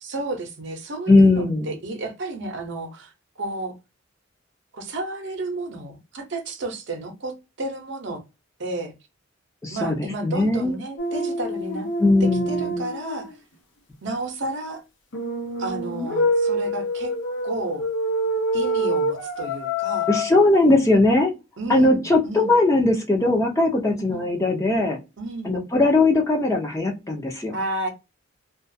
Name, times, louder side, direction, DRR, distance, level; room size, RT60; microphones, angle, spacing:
voice 1, 0.0-3.1 3.4-3.7 4.7-8.2 8.6-8.9 9.7-11.9 12.2-13.4 14.0-14.8 15.6-17.1 17.4-17.9 18.5-20.1 21.6-22.5 24.0-24.3 25.2-25.6 27.5-27.9, right 2 dB, 60° right, 0.7 m, -32 dB
voice 2, 1.1-1.7 9.6-10.0 10.2-10.8 12.0-12.8 20.1-21.3 21.7-25.0 25.4-27.5, left 2 dB, 15° left, 0.6 m, -19 dB
sound 1, 11.0-13.3 15.1-20.3, equal, 60° left, 0.7 m, -26 dB
2.3 x 2.2 x 2.6 m
head